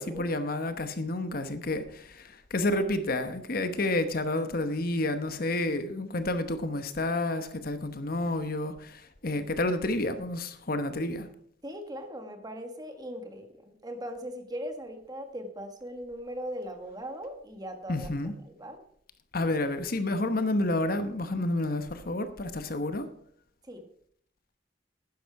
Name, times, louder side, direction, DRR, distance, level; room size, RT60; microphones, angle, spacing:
voice 1, 0.0-11.3 17.9-18.3 19.3-23.1, left 2 dB, 55° left, 1.0 m, -30 dB
voice 2, 11.6-18.1 18.5-18.8 23.6-23.9, equal, 20° right, 1.5 m, -39 dB
12.0 x 10.0 x 4.7 m
head